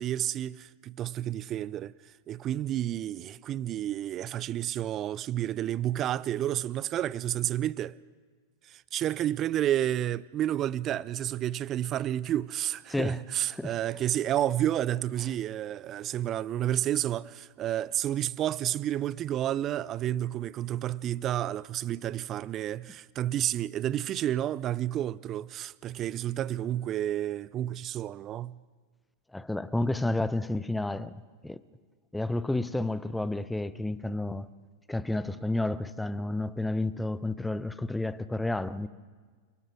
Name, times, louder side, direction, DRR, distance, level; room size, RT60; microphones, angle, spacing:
voice 1, 0.0-8.0 8.6-28.6, right 12 dB, 30° right, 0.5 m, -30 dB
voice 2, 12.9-13.2 13.5-13.7 29.3-31.1 31.4-31.6 32.1-34.5 34.9-38.9, left 2 dB, 5° left, 0.7 m, -30 dB
29.0 x 19.0 x 4.9 m
figure-of-eight pair, 90°, 0 cm